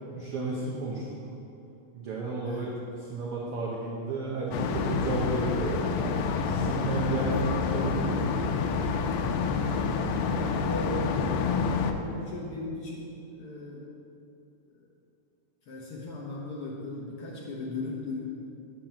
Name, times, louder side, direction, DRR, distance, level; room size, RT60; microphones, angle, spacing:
voice 1, 0.2-1.2 1.9-2.7 3.0-5.8 6.4-8.3, right 3 dB, 70° right, -4 dB, 1.3 m, -32 dB
sound 1, 4.5-11.9, left 5 dB, 90° left, 2.2 m, -28 dB
voice 2, 10.6-11.5 11.9-13.9 14.7-14.9 15.6-18.3, left 3 dB, 60° left, -4 dB, 1.6 m, -37 dB
7.3 x 5.8 x 7.6 m, 2.6 s
omnidirectional pair, 3.6 m